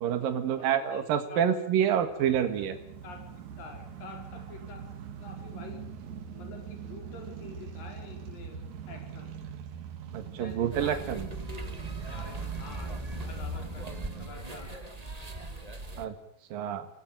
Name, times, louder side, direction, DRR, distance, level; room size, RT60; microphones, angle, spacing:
voice 1, 0.0-2.8 10.1-11.3 16.0-16.2 16.5-16.9, right 9 dB, 80° right, 8 dB, 3.4 m, -28 dB
voice 2, 0.5-1.0 1.3-1.4 1.8-3.2 3.6-4.8 5.2-5.8 6.3-8.6 8.9-9.3 10.3-11.2 11.5-14.8, left 5 dB, 80° left, 3 dB, 6.4 m, -48 dB
sound 1, 2.0-14.3, right 7 dB, 60° right, 2.9 m, -43 dB
sound 2, 10.7-16.1, right 1 dB, 20° right, 1.0 m, -39 dB
27.0 x 18.0 x 9.0 m, 0.72 s
omnidirectional pair, 3.9 m